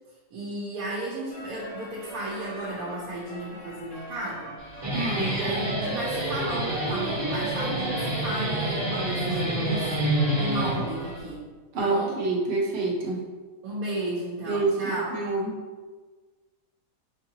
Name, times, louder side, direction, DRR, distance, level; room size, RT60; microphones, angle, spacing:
voice 1, 0.3-4.6 5.1-9.9 10.4-11.5 11.8-12.2 13.6-15.2, right 1 dB, 90° right, -6 dB, 1.1 m, -34 dB
sound 1, 1.3-11.2, equal, 35° left, 0.8 m, -43 dB
Guitar, 4.6-11.2, right 1 dB, 20° right, 1.3 m, -28 dB
voice 2, 4.9-5.3 5.7-6.0 11.7-13.2 14.5-15.6, right 3 dB, 55° right, -3 dB, 0.9 m, -27 dB
4.6 x 2.7 x 2.8 m, 1.4 s
omnidirectional pair, 1.5 m